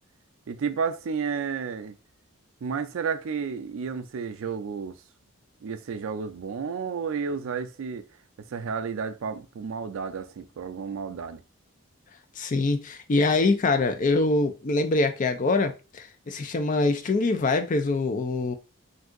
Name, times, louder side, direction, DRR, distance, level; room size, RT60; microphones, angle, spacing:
voice 1, 0.5-2.0 2.6-5.0 5.6-8.1 8.4-11.4, right 6 dB, 65° right, 0.4 m, -31 dB
voice 2, 12.4-18.5, left 3 dB, 35° left, 0.4 m, -24 dB
2.6 x 2.3 x 3.6 m
head